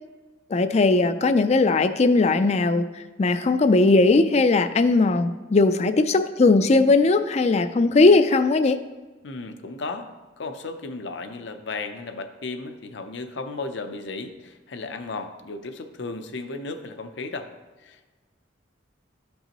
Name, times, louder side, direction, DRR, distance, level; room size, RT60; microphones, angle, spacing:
voice 1, 0.5-8.8, left 3 dB, 35° left, 11 dB, 0.4 m, -19 dB
voice 2, 9.2-10.1 10.4-17.5 17.8-18.1, left 3 dB, 70° left, 8 dB, 0.7 m, -34 dB
13.0 x 5.4 x 3.0 m, 1.2 s
head